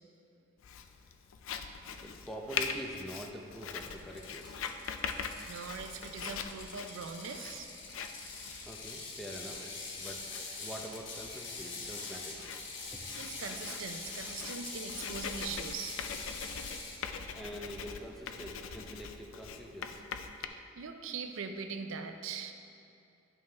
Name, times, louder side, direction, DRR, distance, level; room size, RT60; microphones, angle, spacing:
Writing, 0.6-20.5, left 6 dB, 80° left, 0.4 m, -43 dB
voice 1, 2.0-4.6 8.7-9.6 10.0-12.5 12.9-13.0 17.3-20.0, right 1 dB, ahead, 0 dB, 0.6 m, -45 dB
Ratchet pawl, 3.8-17.0, left 3 dB, 65° left, 1.1 m, -44 dB
voice 2, 5.5-7.7 13.2-16.4 20.5-22.5, right 5 dB, 75° right, 7 dB, 0.5 m, -41 dB
11.0 x 5.4 x 3.4 m, 2.5 s
head